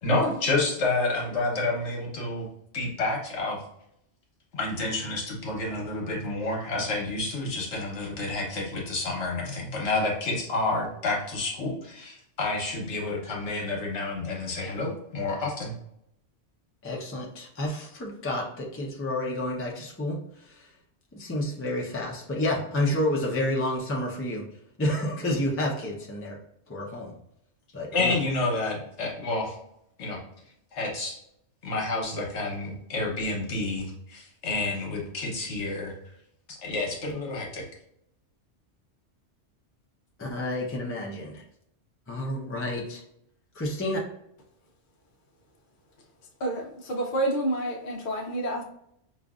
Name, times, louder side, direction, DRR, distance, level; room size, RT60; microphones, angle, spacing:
voice 1, 0.0-2.5 2.7-3.6 4.5-15.7 27.9-29.6 30.0-30.2 30.7-31.2 31.6-35.9 36.5-37.6, left 2 dB, 70° left, -1 dB, 1.2 m, -29 dB
voice 2, 16.8-20.7 21.1-24.5 24.8-26.4 26.7-27.1 27.7-28.1 40.2-41.4 42.1-43.0 43.6-44.0, left 1 dB, 20° left, -1 dB, 0.4 m, -30 dB
voice 3, 46.4-48.6, right 1 dB, 50° left, 1 dB, 0.7 m, -29 dB
5.1 x 2.4 x 2.3 m, 0.74 s
omnidirectional pair, 1.2 m